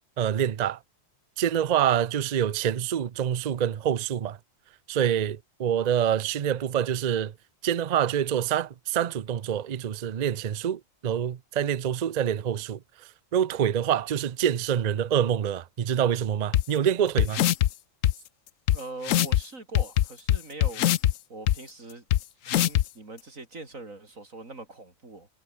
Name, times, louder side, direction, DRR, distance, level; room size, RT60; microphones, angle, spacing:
voice 1, 0.2-0.8 1.4-4.4 4.9-7.3 7.6-17.4, right 9 dB, 45° right, 0.5 m, -26 dB
sound 1, 16.5-16.6 17.2-17.7 18.0-18.1 18.7-18.8 19.0-19.4 19.7-21.1 21.5-21.6 22.1-22.2 22.5-22.8, left 12 dB, 85° left, 1.0 m, -21 dB
voice 2, 18.7-20.9 21.3-22.1 22.5-25.3, right 2 dB, 90° right, 4.8 m, -42 dB
omnidirectional pair, 1.3 m